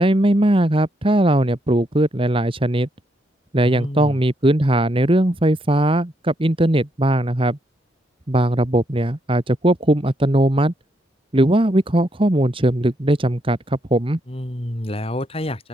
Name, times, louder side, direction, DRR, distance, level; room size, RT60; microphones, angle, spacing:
voice 1, 0.0-2.9 3.5-7.6 8.3-10.7 11.3-14.2, right 1 dB, 25° right, 1.3 m, -19 dB
voice 2, 3.6-4.2 14.3-15.7, left 1 dB, 30° left, 3.0 m, -28 dB
open air
head